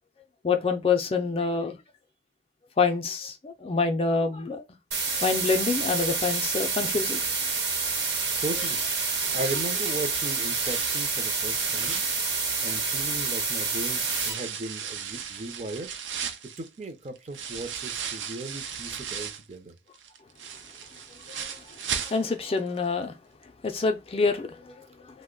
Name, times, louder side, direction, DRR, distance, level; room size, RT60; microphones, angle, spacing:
voice 1, 0.4-1.8 2.8-4.6 5.2-7.2 22.1-23.1 23.6-24.5, left 4 dB, 30° left, 0.3 m, -26 dB
sound 1, 4.9-14.3, right 4 dB, 65° right, 1.0 m, -28 dB
sound 2, 7.8-13.0 13.5-19.5 19.9-22.6 22.9-23.0 23.4-23.5, right 7 dB, 90° right, 0.5 m, -37 dB
voice 2, 8.4-8.8 9.3-12.1 12.3-15.9 16.2-16.3 16.6-19.7, right 2 dB, 35° right, 0.5 m, -36 dB
2.9 x 2.1 x 3.7 m
head